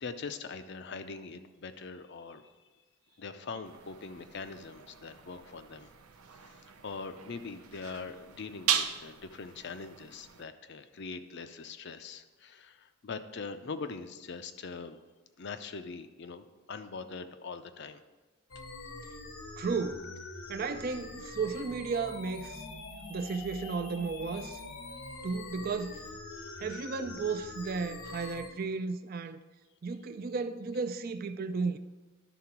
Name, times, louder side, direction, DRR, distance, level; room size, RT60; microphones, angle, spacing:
voice 1, 0.0-2.5 3.2-5.9 6.8-15.0 15.4-18.0 18.6-18.7 26.4-26.5, left 4 dB, 50° left, 0.5 m, -42 dB
sound 1, 3.6-10.4, right 9 dB, 85° right, 0.6 m, -38 dB
Mixed Rising and Falling Shepard Tone, 18.5-28.5, left 3 dB, 85° left, 1.2 m, -44 dB
voice 2, 19.6-20.1 20.5-22.6 23.1-24.6 25.2-26.0 26.6-29.4 29.8-31.8, right 4 dB, 45° right, 0.4 m, -34 dB
11.0 x 3.8 x 5.9 m
head